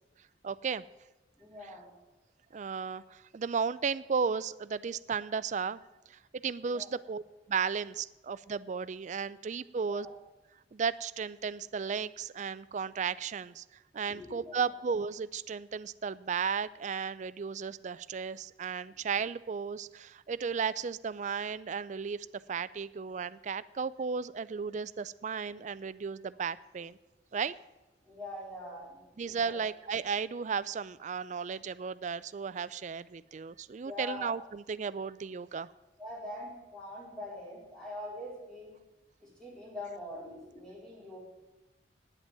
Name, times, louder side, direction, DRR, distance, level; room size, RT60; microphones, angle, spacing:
voice 1, 0.4-0.8 2.5-5.8 6.1-7.2 7.5-10.1 10.7-13.6 13.9-27.0 27.3-27.5 29.2-35.7, right 6 dB, 40° right, 17 dB, 0.4 m, -34 dB
voice 2, 1.4-1.9 6.7-6.9 9.8-10.1 14.1-14.7 28.0-29.6 33.8-34.3 36.0-38.7 39.2-41.2, left 1 dB, 5° left, -5 dB, 4.2 m, -43 dB
9.7 x 8.0 x 8.9 m, 1.1 s
head